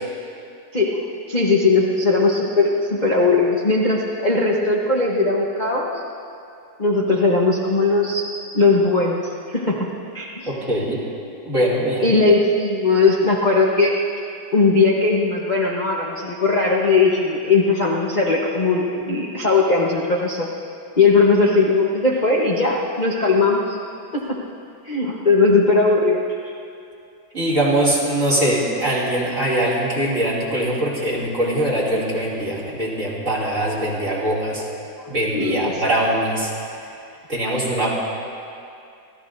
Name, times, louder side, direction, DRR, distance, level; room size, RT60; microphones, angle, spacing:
voice 1, 1.3-6.0 6.8-8.3 8.5-9.9 10.1-10.5 12.0-14.0 14.5-20.5 21.0-23.8 24.1-24.4 24.8-26.2 35.3-35.9, left 3 dB, 30° left, -4 dB, 1.0 m, -18 dB
voice 2, 10.5-11.0 11.4-12.2 27.3-34.6 35.1-36.5 37.3-38.0, right 1 dB, 40° right, -7 dB, 3.3 m, -22 dB
29.0 x 13.5 x 2.7 m, 2.5 s
omnidirectional pair, 2.1 m